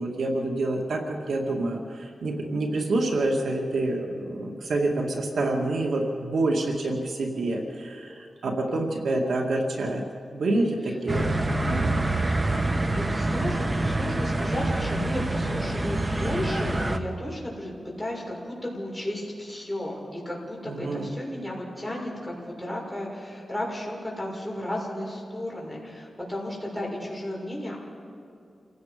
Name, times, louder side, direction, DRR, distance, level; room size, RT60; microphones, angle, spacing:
voice 1, 0.0-10.0 10.3-12.2 20.7-21.1, right 2 dB, 85° right, 1 dB, 2.2 m, -27 dB
sound 1, 11.1-17.0, right 2 dB, 30° right, 1.1 m, -26 dB
voice 2, 12.9-27.8, left 1 dB, 5° right, -2 dB, 6.5 m, -34 dB
29.0 x 17.5 x 5.3 m, 2.5 s
wide cardioid pair, 90°, 0 cm